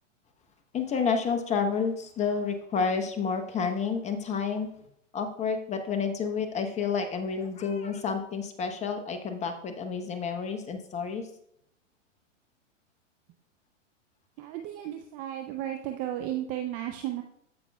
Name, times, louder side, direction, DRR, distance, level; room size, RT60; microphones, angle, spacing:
voice 1, 0.7-4.7 5.1-11.2, left 5 dB, 20° left, 7 dB, 0.9 m, -30 dB
voice 2, 14.4-17.2, right 12 dB, 25° right, 5 dB, 0.4 m, -34 dB
14.5 x 5.3 x 2.3 m, 0.72 s
hypercardioid pair, 120°, 38 cm